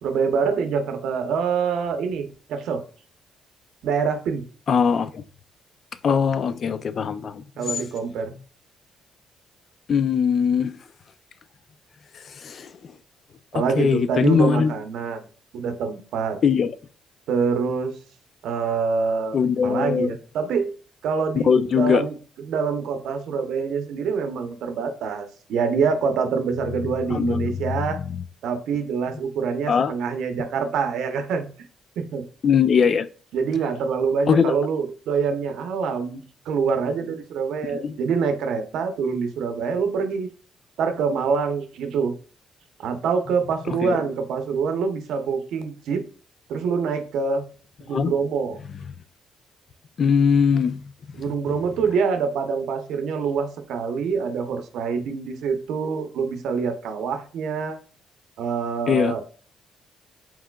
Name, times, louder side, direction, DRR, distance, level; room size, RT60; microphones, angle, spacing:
voice 1, 0.0-2.8 3.8-4.4 7.6-8.3 13.5-15.2 15.5-16.4 17.3-17.9 18.4-19.4 19.6-20.7 21.0-28.0 28.4-31.5 32.0-32.2 33.3-36.2 36.5-40.3 40.8-42.1 42.8-46.0 46.5-47.4 47.9-48.6 51.1-57.8 58.4-59.2, right 5 dB, 80° right, 0.8 m, -25 dB
voice 2, 4.7-5.1 6.0-7.4 9.9-10.8 12.4-12.7 13.8-14.7 16.4-16.7 19.3-20.1 21.5-22.0 27.1-27.5 29.7-29.9 32.4-33.1 34.3-34.4 37.8-37.9 47.9-48.1 50.0-50.8 58.9-59.1, left 6 dB, 50° left, 0.4 m, -20 dB
4.8 x 3.7 x 2.3 m
cardioid pair, 90°, 0 cm